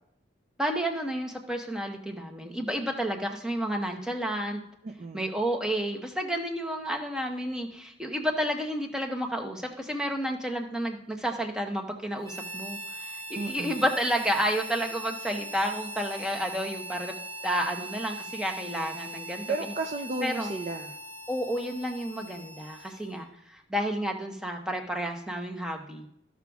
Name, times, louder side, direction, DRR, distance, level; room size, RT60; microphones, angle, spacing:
voice 1, 0.6-4.6 5.1-17.2 17.4-19.4 20.2-20.5 21.3-26.1, equal, 5° right, 2 dB, 0.8 m, -31 dB
voice 2, 4.8-5.3 13.4-13.8 19.5-21.0, right 3 dB, 40° right, 5 dB, 0.4 m, -33 dB
Harmonica, 12.2-23.3, right 1 dB, 85° right, 1.7 m, -41 dB
14.5 x 6.0 x 2.3 m, 0.79 s
head